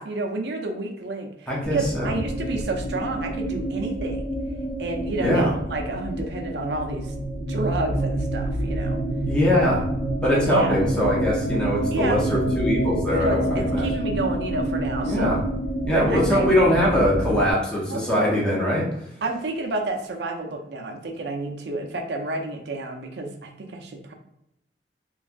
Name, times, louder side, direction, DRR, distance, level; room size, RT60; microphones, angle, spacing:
voice 1, 0.0-4.2 4.8-7.1 7.5-9.0 10.3-10.8 11.9-12.2 13.2-15.4 15.9-16.5 17.9-18.4 19.2-24.1, right 2 dB, 70° right, 3 dB, 0.5 m, -30 dB
voice 2, 1.5-2.1 5.2-5.5 9.3-9.8 10.2-13.9 15.0-15.4 15.8-18.9, left 1 dB, 5° left, -6 dB, 0.7 m, -22 dB
sound 1, 1.6-17.5, right 1 dB, 65° left, 0.5 m, -28 dB
3.2 x 2.3 x 2.5 m, 0.81 s
head